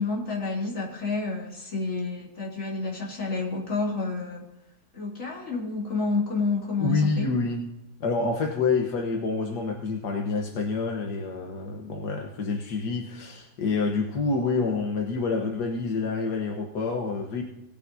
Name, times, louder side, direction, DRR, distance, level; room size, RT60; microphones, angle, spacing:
voice 1, 0.0-4.4 4.9-7.3, left 3 dB, 50° left, -4 dB, 3.5 m, -29 dB
voice 2, 6.8-7.6 8.0-17.4, left 4 dB, 85° left, 2 dB, 1.8 m, -27 dB
18.5 x 10.5 x 2.7 m, 0.89 s
omnidirectional pair, 1.7 m